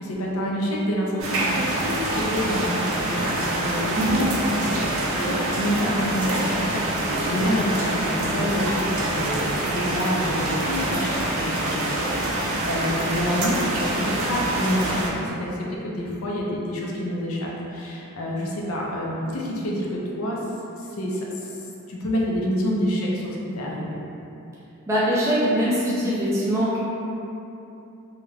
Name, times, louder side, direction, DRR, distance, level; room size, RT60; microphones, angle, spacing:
voice 1, 0.0-4.2 4.6-4.9 5.1-8.5 9.0-20.4 20.8-21.6 21.9-24.0, equal, 80° left, -3 dB, 0.5 m, -28 dB
sound 1, 1.2-15.1, right 1 dB, 75° right, 0.4 m, -26 dB
voice 2, 8.3-8.8 24.9-26.8, equal, 15° right, -9 dB, 0.4 m, -23 dB
2.3 x 2.1 x 3.2 m, 2.9 s
head